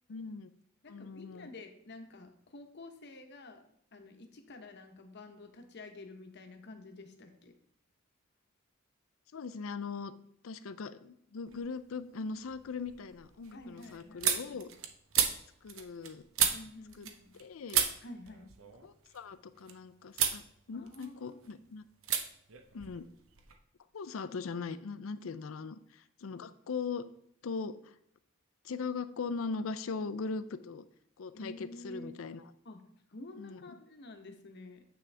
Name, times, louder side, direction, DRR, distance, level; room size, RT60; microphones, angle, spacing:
voice 1, 0.1-0.5 0.9-1.5 9.3-10.1 10.4-14.7 15.6-16.2 17.0-17.1 17.4-17.8 18.8-20.4 20.7-21.8 22.7-23.0 23.9-27.1 27.4-27.9 28.6-30.9 31.2-32.4 33.4-33.6, left 4 dB, 75° left, 13 dB, 0.5 m, -40 dB
voice 2, 0.8-3.6 3.9-7.5 13.5-14.7 16.5-17.3 18.0-18.5 20.7-21.4 31.3-32.2 32.6-32.8 33.1-34.8, left 2 dB, 55° left, 6 dB, 1.0 m, -49 dB
sound 1, 11.5-12.0 12.4-17.4 17.7-19.7 20.1-20.4 20.8-21.5 22.0-22.2 22.5-23.5, right 8 dB, 75° right, 0.8 m, -34 dB
8.1 x 6.1 x 3.3 m, 0.71 s
head